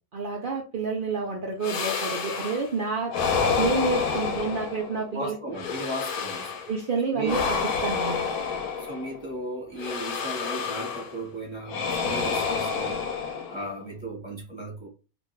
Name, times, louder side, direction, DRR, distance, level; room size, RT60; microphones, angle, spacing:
voice 1, 0.1-3.1 3.6-5.4 6.7-8.2, right 4 dB, 85° right, 0.4 m, -29 dB
sound 1, 1.6-2.7 3.1-5.1 5.5-6.8 7.2-9.2 9.8-11.2 11.7-13.8, left 5 dB, 80° left, 1.1 m, -29 dB
voice 2, 5.1-6.6 7.1-7.3 8.6-13.0 13.5-14.9, right 1 dB, 20° left, 0.9 m, -36 dB
2.5 x 2.3 x 3.1 m
omnidirectional pair, 1.5 m